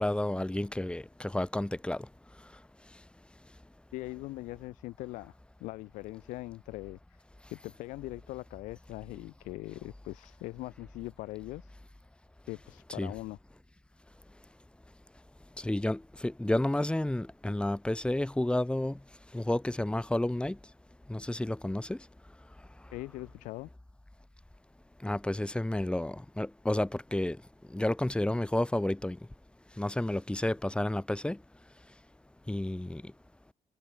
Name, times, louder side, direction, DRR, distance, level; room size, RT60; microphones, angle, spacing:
voice 1, 0.0-2.1 12.9-13.1 15.6-19.0 19.3-20.6 21.1-22.0 25.0-27.4 27.7-29.2 29.8-31.4 32.5-33.1, left 1 dB, 10° left, 3.4 m, -31 dB
voice 2, 3.9-5.3 5.6-7.0 7.5-11.7 12.5-13.4 22.9-23.7, left 19 dB, 90° left, 3.8 m, -41 dB
cardioid pair, 90°, 13 cm